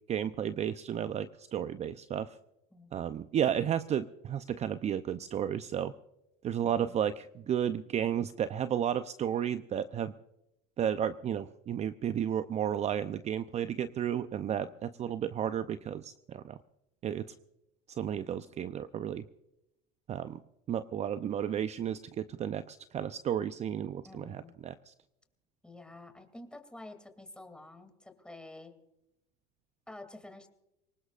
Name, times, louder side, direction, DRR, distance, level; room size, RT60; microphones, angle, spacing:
voice 1, 0.1-2.4 2.9-5.9 6.4-10.1 10.8-16.6 17.0-17.3 17.9-19.2 20.1-20.4 20.7-24.9, right 9 dB, 35° right, 12 dB, 0.6 m, -33 dB
voice 2, 6.6-7.1 14.6-14.9 24.0-24.5 25.6-28.7 29.9-30.5, left 2 dB, 5° left, 7 dB, 2.7 m, -49 dB
24.0 x 19.5 x 2.5 m, 0.89 s
supercardioid pair, 100°, 20 cm